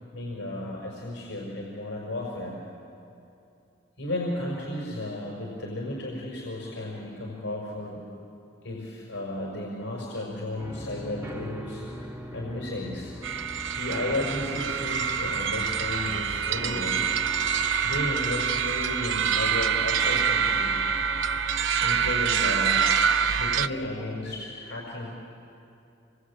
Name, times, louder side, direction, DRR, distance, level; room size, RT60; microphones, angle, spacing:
voice 1, 0.1-2.6 4.0-8.0 8.6-13.1 13.7-17.0 17.8-20.8 21.8-22.9 23.3-25.2, left 1 dB, 70° left, -3 dB, 5.1 m, -34 dB
sound 1, 10.6-21.6, equal, 15° right, 1.8 m, -42 dB
sound 2, 13.2-23.7, right 7 dB, 70° right, 0.7 m, -26 dB
28.0 x 22.5 x 8.5 m, 2.7 s
head